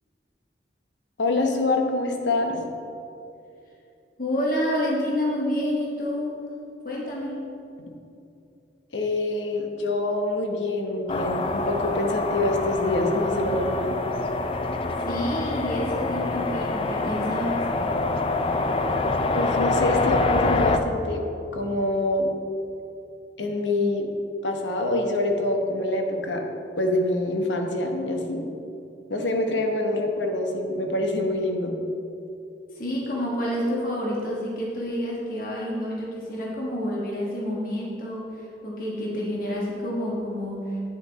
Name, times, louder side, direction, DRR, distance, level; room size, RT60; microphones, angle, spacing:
voice 1, 1.2-2.6 8.9-14.0 19.3-21.2 21.5-22.3 23.4-24.1 24.4-26.4 26.8-28.4 29.1-31.8, left 2 dB, 80° left, 3 dB, 1.0 m, -25 dB
voice 2, 4.2-6.4 6.8-7.4 15.0-17.7 32.7-40.8, equal, 50° left, -4 dB, 1.4 m, -28 dB
sound 1, 11.1-20.8, left 2 dB, 30° left, 0.4 m, -25 dB
9.3 x 7.1 x 4.0 m, 2.7 s
head